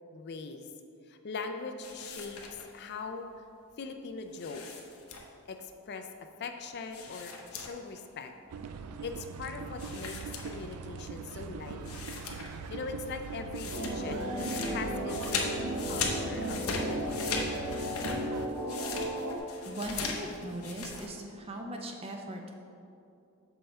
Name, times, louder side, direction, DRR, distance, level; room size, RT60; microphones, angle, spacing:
voice 1, 0.1-0.7 1.1-3.5 3.8-4.6 5.5-6.1 6.4-8.3 9.0-10.2 10.4-12.1 12.7-17.3, left 4 dB, 50° left, 6 dB, 0.4 m, -41 dB
sound 1, 1.8-2.9 4.3-5.5 6.9-8.0 8.3-8.4 9.8-11.0 11.5-11.6 11.8-12.7 13.0-21.1, left 4 dB, 70° left, 0.9 m, -39 dB
sound 2, 8.5-18.5, right 5 dB, 90° right, 0.4 m, -41 dB
sound 3, 13.7-19.4, equal, 55° right, 1.0 m, -35 dB
voice 2, 18.7-19.1 19.7-22.5, right 1 dB, 25° right, 2 dB, 0.6 m, -39 dB
6.9 x 5.5 x 4.3 m, 2.6 s
head